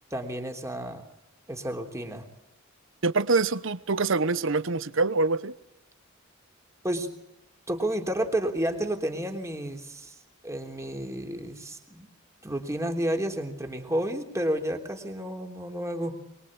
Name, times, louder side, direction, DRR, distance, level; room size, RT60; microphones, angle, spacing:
voice 1, 0.1-1.0 1.5-2.3 6.8-7.1 7.7-10.1 10.4-12.1 12.4-16.1, right 1 dB, 15° right, 3.3 m, -31 dB
voice 2, 3.0-5.5, right 3 dB, 65° right, 0.9 m, -25 dB
24.0 x 22.5 x 8.8 m
head